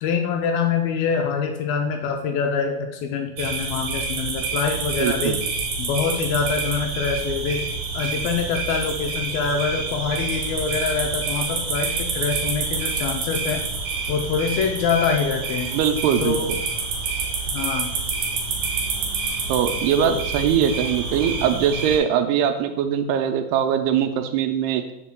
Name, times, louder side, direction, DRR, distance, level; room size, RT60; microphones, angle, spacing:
voice 1, 0.0-5.4 5.8-7.7 7.9-13.6 14.1-15.7 16.2-16.5 17.5-17.9 20.0-20.2, left 6 dB, 80° left, 3 dB, 2.2 m, -25 dB
sound 1, 3.4-22.0, right 4 dB, 70° right, 1.9 m, -28 dB
voice 2, 5.0-5.4 15.7-16.6 19.5-24.8, right 8 dB, 85° right, 7 dB, 2.5 m, -22 dB
7.3 x 7.1 x 2.2 m, 0.91 s
omnidirectional pair, 4.5 m